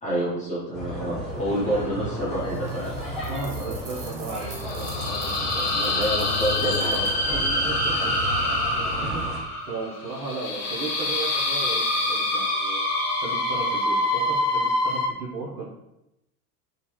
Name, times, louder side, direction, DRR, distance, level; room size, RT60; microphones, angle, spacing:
voice 1, 0.0-3.0 5.7-6.9 7.3-7.7 9.0-9.2, equal, 15° left, -9 dB, 0.8 m, -28 dB
sound 1, 0.7-9.4, equal, 15° right, 1.4 m, -33 dB
sound 2, 2.1-3.0 3.8-15.1, left 1 dB, 65° left, 0.7 m, -26 dB
sound 3, 2.4-7.3, right 3 dB, 90° right, 0.6 m, -45 dB
voice 2, 3.3-8.1 9.0-12.8 13.2-15.6, right 3 dB, 50° right, -7 dB, 0.8 m, -36 dB
2.7 x 2.2 x 3.1 m, 0.87 s
figure-of-eight pair, 80°, 48 cm